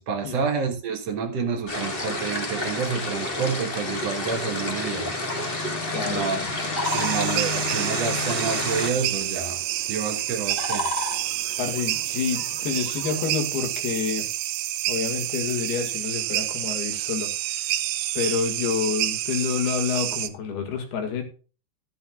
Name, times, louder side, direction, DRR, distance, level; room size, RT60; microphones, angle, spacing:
voice 1, 0.0-5.1 6.1-6.5 6.9-9.6 9.9-10.9, right 5 dB, 60° right, 1.8 m, -28 dB
sound 1, 1.7-8.9, left 2 dB, 40° left, 0.8 m, -29 dB
voice 2, 5.9-6.2 11.6-14.3 14.9-17.6 18.2-21.2, left 6 dB, 80° left, 4.0 m, -28 dB
sound 2, 6.7-13.2, left 1 dB, 20° left, 3.1 m, -35 dB
sound 3, 6.8-20.3, right 14 dB, 75° right, 2.1 m, -29 dB
12.5 x 11.5 x 2.4 m
omnidirectional pair, 4.4 m